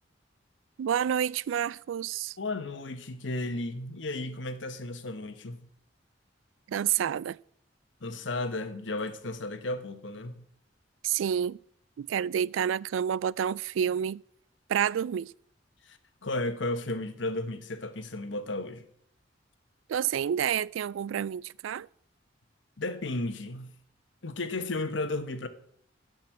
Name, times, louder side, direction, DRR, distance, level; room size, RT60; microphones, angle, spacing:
voice 1, 0.8-2.4 6.7-7.4 11.0-11.6 12.0-14.2 14.7-15.3 19.9-21.9, right 9 dB, 80° right, 0.3 m, -29 dB
voice 2, 2.4-5.7 8.0-10.4 15.8-18.9 22.8-23.7 24.2-25.5, left 2 dB, 70° left, 1.1 m, -34 dB
12.0 x 5.3 x 7.4 m
head